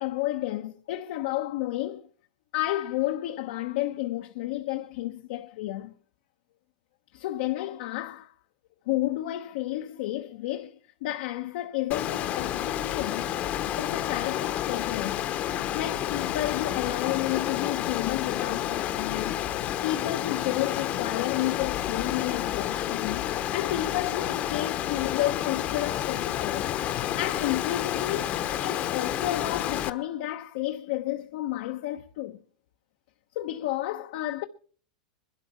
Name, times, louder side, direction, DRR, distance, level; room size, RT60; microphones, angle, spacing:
voice 1, 0.0-2.1 2.5-5.9 7.1-8.3 8.9-13.3 13.8-15.3 15.7-19.4 19.8-26.7 27.2-32.4 33.3-34.4, left 15 dB, 65° left, 0.8 m, -31 dB
Water, 11.9-29.9, left 11 dB, 35° left, 0.9 m, -30 dB
21.5 x 12.5 x 4.3 m
supercardioid pair, 130°, 4 cm